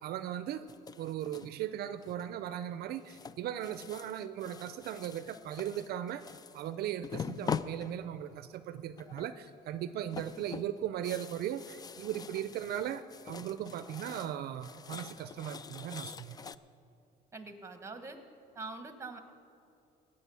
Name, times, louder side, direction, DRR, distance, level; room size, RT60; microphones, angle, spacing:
voice 1, 0.0-0.7 1.0-16.4, right 10 dB, 70° right, 12 dB, 0.5 m, -38 dB
sound 1, 0.7-1.6 2.0-2.5 3.1-6.7 7.0-8.4 9.0-9.5 9.8-14.4 14.6-16.6, left 6 dB, 25° left, 0.3 m, -43 dB
voice 2, 17.3-18.2 18.5-19.2, right 3 dB, 15° right, 8 dB, 1.3 m, -43 dB
17.5 x 6.7 x 6.9 m, 2.7 s
cardioid pair, 110°, 17 cm